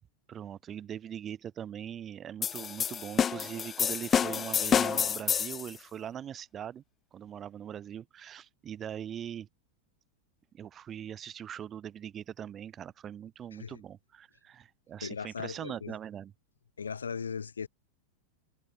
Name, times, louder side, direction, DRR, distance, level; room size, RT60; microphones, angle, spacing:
voice 1, 0.3-6.8 7.1-9.5 10.5-16.3, right 9 dB, 25° right, 1.8 m, -41 dB
sound 1, 2.4-5.7, left 8 dB, 20° left, 0.7 m, -28 dB
voice 2, 15.0-16.0 16.8-17.7, left 6 dB, 70° left, 4.3 m, -38 dB
figure-of-eight pair, 90°, 0 cm